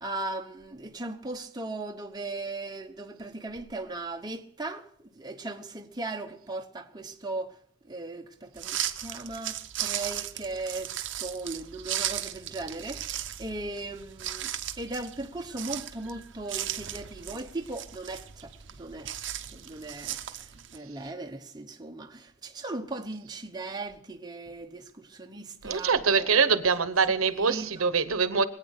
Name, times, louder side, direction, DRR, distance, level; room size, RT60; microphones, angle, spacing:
voice 1, 0.0-7.6 7.8-14.5 14.8-19.1 19.4-20.5 20.7-26.6 27.3-27.9, right 2 dB, 20° right, 0.9 m, -38 dB
sound 1, 8.6-20.8, right 11 dB, 60° right, 0.8 m, -36 dB
voice 2, 25.6-28.4, right 5 dB, 90° right, 1.0 m, -24 dB
22.5 x 9.0 x 6.6 m
head